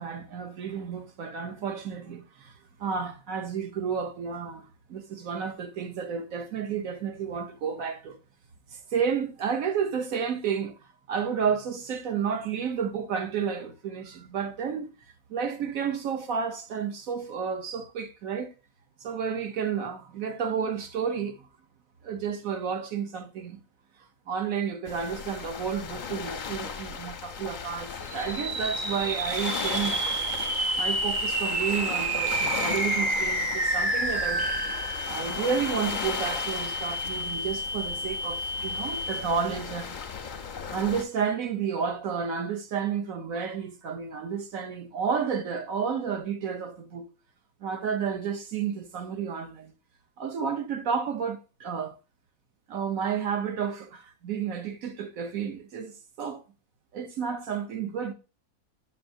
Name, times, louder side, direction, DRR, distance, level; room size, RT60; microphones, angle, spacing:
voice 1, 0.0-8.2 8.7-10.8 11.1-14.9 15.3-18.5 19.0-21.5 22.0-23.6 24.3-30.0 30.7-34.5 35.1-40.3 40.7-47.0 47.6-49.7 50.2-51.9 52.7-56.4 56.9-58.1, right 7 dB, 65° right, 1.2 m, -31 dB
sound 1, 24.9-41.0, left 6 dB, 50° left, 0.6 m, -36 dB
sound 2, 28.0-39.6, right 2 dB, 40° right, 0.9 m, -30 dB
7.9 x 6.5 x 2.6 m
omnidirectional pair, 1.6 m